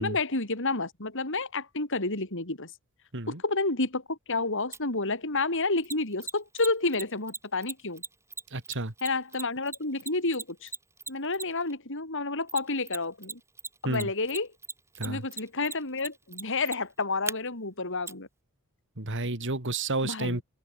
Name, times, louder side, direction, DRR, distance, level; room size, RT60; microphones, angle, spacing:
voice 1, 0.0-2.7 3.3-8.0 9.0-10.7 11.1-13.4 13.8-14.5 15.0-18.3 20.0-20.4, left 3 dB, 60° left, 5.9 m, -30 dB
Mechanisms, 4.7-4.8 5.8-11.7 12.5-13.3 13.6-17.3 18.1-18.2, right 3 dB, 15° right, 5.0 m, -37 dB
voice 2, 8.5-8.9 13.8-14.1 15.0-15.2 19.0-20.4, right 2 dB, 60° right, 2.8 m, -31 dB
open air
head